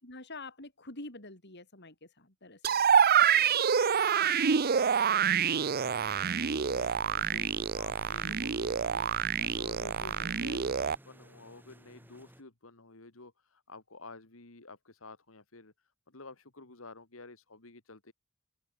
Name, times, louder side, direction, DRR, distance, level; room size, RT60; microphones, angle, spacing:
voice 1, 0.0-2.8, left 2 dB, 55° left, 6.3 m, -46 dB
sound 1, 2.6-11.0, right 7 dB, 45° right, 0.6 m, -27 dB
voice 2, 3.2-18.1, left 3 dB, 70° left, 2.2 m, -52 dB
sound 2, 5.5-12.4, right 1 dB, 10° right, 5.1 m, -57 dB
open air
head